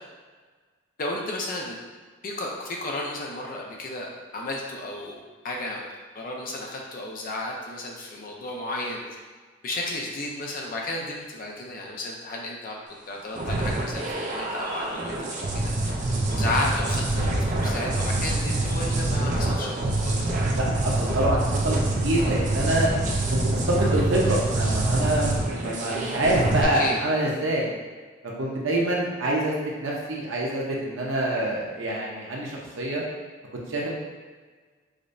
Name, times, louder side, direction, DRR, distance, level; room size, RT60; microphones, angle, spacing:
voice 1, 1.0-1.8 2.2-9.0 9.6-15.9 16.3-20.2 26.7-27.0, left 2 dB, 45° left, -1 dB, 0.6 m, -33 dB
sound 1, 13.3-26.6, right 2 dB, 40° right, 0.5 m, -26 dB
voice 2, 20.5-22.9 23.3-27.7 28.4-33.0 33.7-33.9, right 1 dB, 90° right, -3 dB, 0.8 m, -26 dB
4.9 x 2.1 x 2.6 m, 1.4 s
head